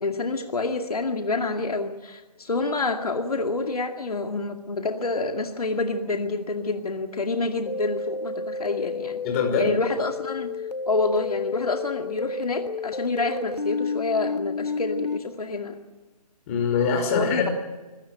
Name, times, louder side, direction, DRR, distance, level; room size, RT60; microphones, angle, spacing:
voice 1, 0.0-9.2 9.6-10.5 10.9-15.7 17.1-17.5, left 3 dB, 70° left, 4 dB, 2.2 m, -27 dB
sound 1, 7.7-15.2, left 4 dB, 90° left, 1.6 m, -31 dB
voice 2, 9.2-9.7 16.5-17.5, left 5 dB, 20° left, 3 dB, 5.2 m, -23 dB
25.0 x 17.0 x 9.2 m, 1.2 s
figure-of-eight pair, 160°, 20 cm